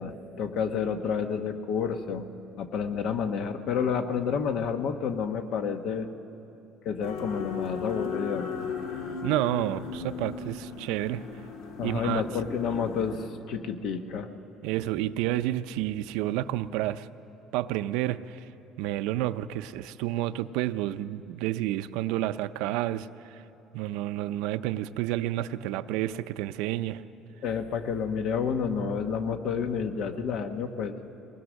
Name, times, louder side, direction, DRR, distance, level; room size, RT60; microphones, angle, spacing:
voice 1, 0.0-2.3 2.6-6.1 6.8-8.5 11.8-14.3 27.4-31.0, left 6 dB, 60° left, 1.2 m, -30 dB
sound 1, 7.0-13.3, left 5 dB, 85° left, 1.7 m, -36 dB
voice 2, 9.2-11.2 11.8-12.2 14.6-17.1 17.5-18.5 18.8-23.4 23.7-27.0, right 14 dB, 85° right, 0.5 m, -30 dB
23.0 x 19.5 x 6.4 m
cardioid pair, 135°, 0 cm